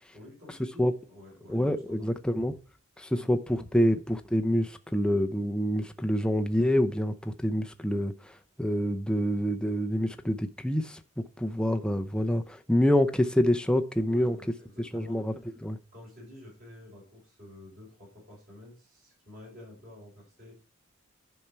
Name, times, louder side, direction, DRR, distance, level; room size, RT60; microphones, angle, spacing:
voice 1, 0.1-2.1 3.2-4.0 14.1-15.5 15.9-20.6, left 1 dB, 40° right, 5.8 m, -50 dB
voice 2, 1.5-2.6 3.0-14.4 14.9-15.3 15.6-15.8, equal, 5° left, 0.6 m, -27 dB
10.5 x 5.5 x 4.5 m
head